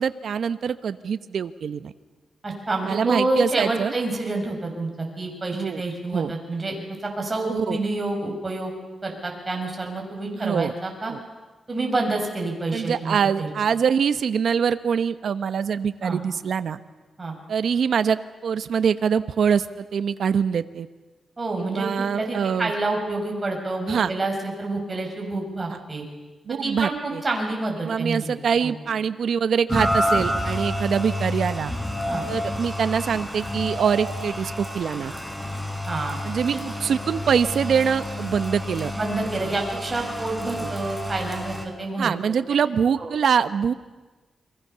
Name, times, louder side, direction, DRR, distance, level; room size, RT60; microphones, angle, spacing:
voice 1, 0.0-1.9 2.8-3.9 5.5-5.8 6.1-6.3 7.5-7.8 10.4-10.7 11.1-11.2 12.7-16.8 17.5-20.9 21.6-22.7 23.9-24.1 26.5-27.2 27.8-31.7 32.3-35.1 36.2-38.9 40.6-40.7 42.0-43.7, right 7 dB, 75° right, 12 dB, 1.1 m, -24 dB
voice 2, 2.4-4.9 5.2-6.7 7.0-8.7 9.0-11.1 11.7-13.5 16.0-16.2 17.2-17.4 21.4-26.0 26.5-28.7 32.1-32.2 35.8-36.2 36.5-36.6 38.9-42.1 43.0-43.1, right 2 dB, 25° right, 1 dB, 6.6 m, -28 dB
Rain, 29.7-41.7, left 1 dB, 10° left, 4.4 m, -29 dB
29.5 x 23.0 x 6.9 m, 1.2 s
cardioid pair, 100°, 0 cm